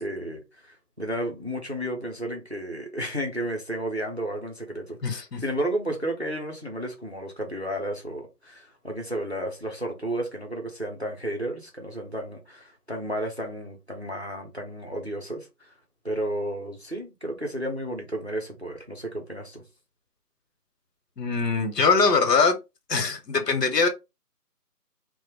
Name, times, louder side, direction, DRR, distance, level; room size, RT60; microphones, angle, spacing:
voice 1, 0.0-15.7 16.0-19.6, right 1 dB, 45° right, 0.4 m, -32 dB
voice 2, 5.0-5.4 21.2-22.6 22.9-23.9, left 4 dB, 80° left, 0.8 m, -22 dB
2.2 x 2.0 x 3.0 m
figure-of-eight pair, 170°, 48 cm